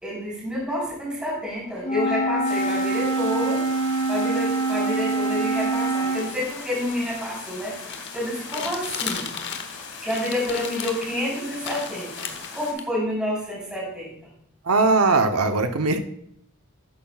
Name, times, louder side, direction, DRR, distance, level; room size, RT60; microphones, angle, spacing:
voice 1, 0.0-3.6 4.1-9.3 10.0-14.1, left 1 dB, 5° right, -6 dB, 3.8 m, -29 dB
Wind instrument woodwind instrument, 1.8-6.3, right 2 dB, 30° left, 3.6 m, -24 dB
sound 1, 2.4-12.7, left 5 dB, 85° left, 1.9 m, -39 dB
sound 2, 7.9-9.8 10.1-11.1 11.6-12.8, left 6 dB, 55° left, 0.9 m, -33 dB
voice 2, 14.6-16.1, right 3 dB, 90° right, 7 dB, 0.8 m, -20 dB
11.5 x 8.5 x 2.4 m, 0.70 s
head